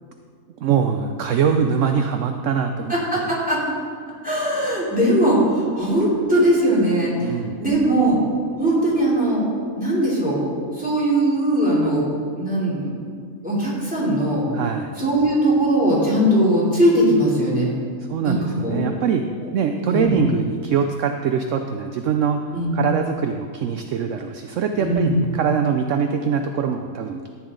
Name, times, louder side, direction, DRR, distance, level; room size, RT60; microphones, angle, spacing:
voice 1, 0.6-2.9 7.2-7.6 14.5-15.0 18.1-19.3 19.5-22.4 22.7-27.3, right 7 dB, 70° right, 6 dB, 0.7 m, -23 dB
voice 2, 2.9-3.6 4.2-7.1 7.6-8.2 8.6-9.5 9.7-10.5 10.8-12.0 12.4-12.9 13.4-14.4 15.0-17.8 18.2-18.8 19.8-20.2 22.5-22.7 24.8-25.2, right 1 dB, 5° right, -7 dB, 3.1 m, -20 dB
13.5 x 8.9 x 3.8 m, 2.1 s
omnidirectional pair, 1.7 m